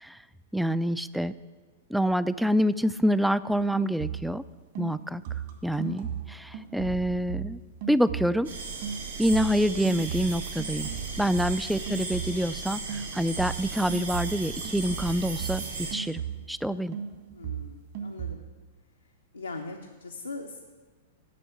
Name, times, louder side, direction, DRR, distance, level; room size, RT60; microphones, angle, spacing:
voice 1, 0.5-1.3 1.9-4.4 4.8-5.2 5.6-7.6 7.9-8.5 9.2-10.9 11.2-15.6 15.9-16.2 16.5-17.0, equal, ahead, 16 dB, 0.3 m, -26 dB
sound 1, 3.5-4.4 4.7-8.5 8.8-12.6 12.9-16.6 16.9-18.3, right 8 dB, 55° right, 2.2 m, -37 dB
sound 2, 8.4-15.9, right 4 dB, 75° right, 3.7 m, -36 dB
voice 2, 17.3-18.4 19.3-20.7, left 3 dB, 90° left, 2 dB, 0.8 m, -40 dB
8.5 x 6.2 x 8.0 m, 1.4 s
figure-of-eight pair, 105°, 0 cm